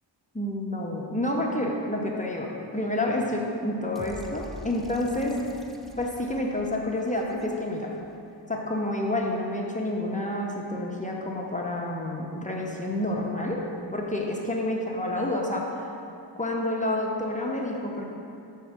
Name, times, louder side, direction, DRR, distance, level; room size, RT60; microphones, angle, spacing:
voice 1, 0.3-2.5 2.7-5.4 6.0-8.0 8.5-13.6 13.9-15.9 16.4-18.0, left 1 dB, 15° left, -2 dB, 0.7 m, -29 dB
sound 1, 4.0-8.1, left 1 dB, ahead, 0.3 m, -45 dB
6.3 x 4.6 x 6.0 m, 2.7 s
wide cardioid pair, 100°, 45 cm